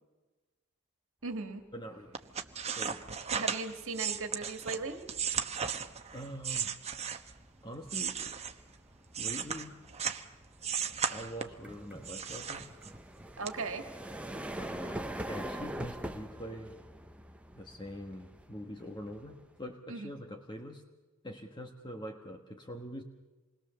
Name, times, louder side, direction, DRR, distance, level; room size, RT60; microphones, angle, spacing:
voice 1, 1.2-1.6 3.3-5.0 13.4-13.8 19.9-20.1, right 3 dB, 65° right, 6 dB, 2.0 m, -37 dB
voice 2, 1.7-2.1 2.7-3.0 6.1-6.8 7.6-8.4 9.2-9.8 11.1-12.7 14.5-16.8 17.5-20.8 21.2-23.0, equal, 20° left, 3 dB, 1.5 m, -44 dB
sound 1, 2.1-7.4 7.8-10.3 10.6-11.6 12.0-13.1 13.5-13.6, right 7 dB, 30° right, 1.0 m, -35 dB
sound 2, 2.3-2.6 3.0-19.7, right 1 dB, 5° right, 0.8 m, -45 dB
27.5 x 21.0 x 7.0 m, 1.2 s
head